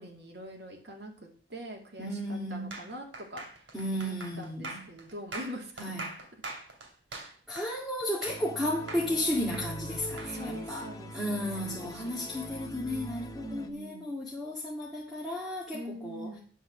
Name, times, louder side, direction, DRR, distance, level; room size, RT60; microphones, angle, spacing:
voice 1, 0.0-3.4 3.9-5.9 7.1-7.3 10.3-12.4 13.4-14.1 15.7-16.4, right 1 dB, 65° right, 0 dB, 2.2 m, -44 dB
voice 2, 2.0-2.7 3.7-4.9 5.8-6.2 7.5-10.8 11.1-16.3, left 1 dB, ahead, -6 dB, 2.0 m, -34 dB
sound 1, 2.7-8.6 8.9-10.3, right 2 dB, 90° right, 2.4 m, -42 dB
sound 2, 8.3-13.7, equal, 20° left, 0.8 m, -42 dB
10.0 x 4.7 x 7.0 m, 0.42 s
head